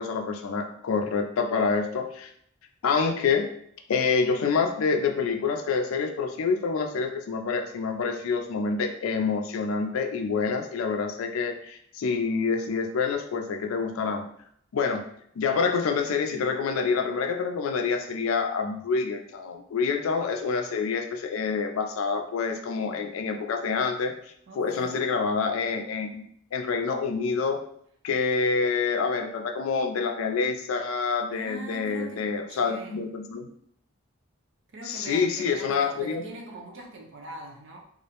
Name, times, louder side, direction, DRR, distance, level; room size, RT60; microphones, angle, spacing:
voice 1, 0.0-2.3 2.8-3.5 3.9-14.2 14.7-15.0 15.4-24.1 24.6-26.2 26.5-27.6 28.0-33.5 34.9-36.2, left 5 dB, 80° left, 4 dB, 0.4 m, -27 dB
voice 2, 24.5-25.1 31.3-33.0 34.7-37.8, right 2 dB, 60° right, 0 dB, 0.6 m, -41 dB
2.4 x 2.0 x 2.8 m, 0.67 s
head